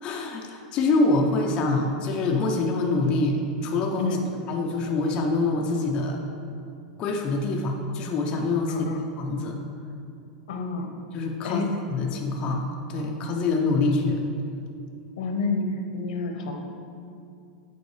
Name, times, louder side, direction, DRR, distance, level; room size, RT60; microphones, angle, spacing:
voice 1, 0.0-4.2 4.5-6.2 7.0-8.9 9.2-9.6 11.1-12.6 12.9-14.2, left 3 dB, 25° left, 1 dB, 0.4 m, -25 dB
voice 2, 8.7-9.0 10.5-10.9 11.4-11.7 15.2-16.6, left 3 dB, 75° left, 4 dB, 0.8 m, -29 dB
8.0 x 4.5 x 3.1 m, 2.5 s
supercardioid pair, 170°, 4 cm